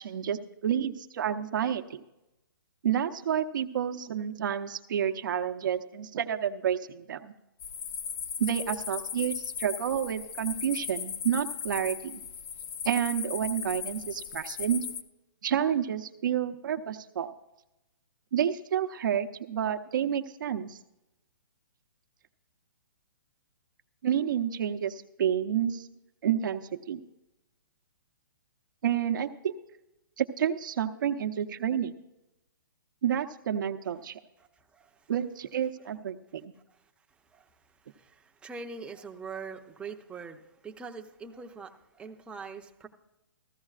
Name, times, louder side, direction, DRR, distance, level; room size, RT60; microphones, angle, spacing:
voice 1, 0.0-2.0 2.8-7.3 8.4-12.2 12.8-14.9 15.4-17.3 18.3-20.8 24.0-25.9 26.2-27.0 28.8-29.5 30.2-31.9 33.0-34.2 35.1-36.5, right 9 dB, 65° right, 6 dB, 0.8 m, -29 dB
sound 1, 7.6-15.0, left 7 dB, 40° left, 0.7 m, -37 dB
voice 2, 34.4-35.1 36.7-36.8 37.3-37.6 37.8-42.9, right 4 dB, 10° right, 4 dB, 0.7 m, -43 dB
15.0 x 14.5 x 2.4 m, 0.93 s
hypercardioid pair, 150°, 12 cm